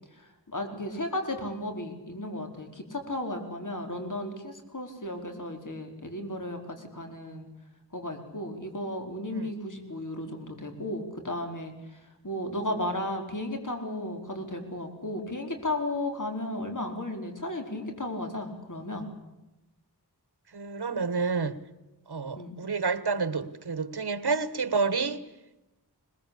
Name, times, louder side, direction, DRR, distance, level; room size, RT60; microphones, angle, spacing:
voice 1, 0.1-7.5 7.9-19.1 22.3-22.6, left 1 dB, 50° left, 4.6 m, -34 dB
voice 2, 20.5-21.6 22.1-25.2, right 4 dB, 85° right, 1.4 m, -29 dB
22.0 x 21.0 x 8.6 m
wide cardioid pair, 60°, 38 cm